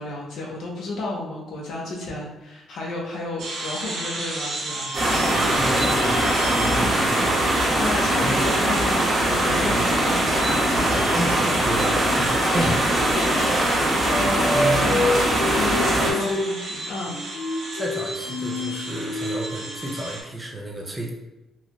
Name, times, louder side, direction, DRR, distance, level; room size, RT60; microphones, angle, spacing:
voice 1, 0.0-4.9 6.8-7.0 7.7-10.8 12.5-12.8 13.1-13.9 14.2-15.1 15.5-17.2, left 2 dB, 65° left, -2 dB, 0.9 m, -32 dB
sound 1, 3.4-20.2, right 2 dB, 65° right, 1.1 m, -34 dB
sound 2, 4.9-16.1, right 1 dB, 30° right, 1.2 m, -21 dB
voice 2, 5.3-6.2 6.5-7.3 8.1-8.4 9.6-9.8 10.9-12.9 13.5-13.8 14.2-14.9 15.9-16.4 17.7-21.1, right 1 dB, 15° right, -1 dB, 0.5 m, -31 dB
sound 3, 14.1-16.5 17.1-19.8, left 1 dB, 80° left, 0.4 m, -27 dB
3.9 x 2.4 x 3.0 m, 1.0 s
cardioid pair, 160°, 0 cm